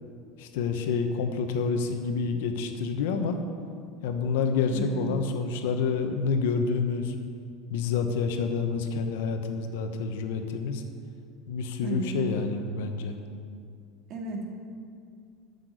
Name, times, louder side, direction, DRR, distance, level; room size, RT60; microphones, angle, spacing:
voice 1, 0.4-3.4 4.0-7.1 7.7-10.8 11.5-13.2, left 5 dB, 80° left, 6 dB, 1.1 m, -28 dB
voice 2, 4.7-5.1 11.8-12.3 14.1-14.4, right 5 dB, 50° right, 1 dB, 2.1 m, -34 dB
9.4 x 6.8 x 7.9 m, 2.3 s
supercardioid pair, 125°, 0 cm